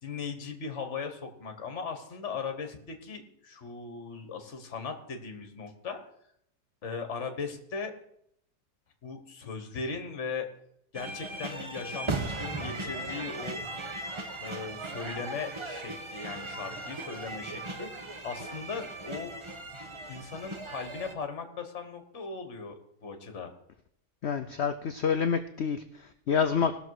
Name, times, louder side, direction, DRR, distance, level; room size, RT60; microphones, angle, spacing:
voice 1, 0.0-6.0 6.8-7.9 9.0-10.5 10.9-13.6 14.4-19.3 20.1-23.5, left 5 dB, 50° left, 6 dB, 1.6 m, -38 dB
sound 1, 10.9-21.1, right 2 dB, 25° right, 0.8 m, -38 dB
voice 2, 24.2-26.8, left 6 dB, 65° left, 10 dB, 0.6 m, -28 dB
18.0 x 6.7 x 4.7 m, 0.73 s
omnidirectional pair, 1.7 m